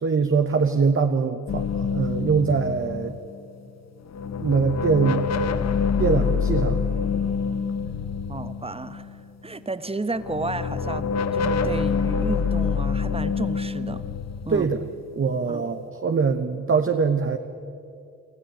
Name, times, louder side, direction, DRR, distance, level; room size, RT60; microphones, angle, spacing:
voice 1, 0.0-3.1 4.4-5.3 6.0-6.8 14.5-14.8 15.1-17.4, right 5 dB, 40° right, 6 dB, 1.2 m, -23 dB
sound 1, 1.5-3.7 4.1-9.2 10.2-15.6, left 5 dB, 55° left, 1.0 m, -26 dB
voice 2, 8.3-14.1 14.4-14.7 15.5-15.6, right 3 dB, 20° right, 12 dB, 1.1 m, -32 dB
25.5 x 14.0 x 9.1 m, 2.5 s
cardioid pair, 60°, 32 cm